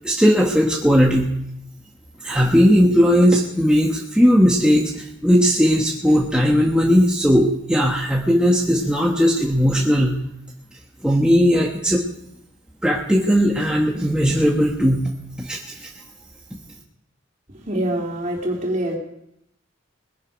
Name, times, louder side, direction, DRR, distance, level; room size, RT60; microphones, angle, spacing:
voice 1, 0.0-1.3 2.2-10.2 11.0-12.0 12.8-15.1 15.4-15.9, equal, 5° right, -2 dB, 1.2 m, -17 dB
voice 2, 17.7-19.0, right 1 dB, 40° right, -1 dB, 3.6 m, -24 dB
20.5 x 10.5 x 5.2 m, 0.79 s
head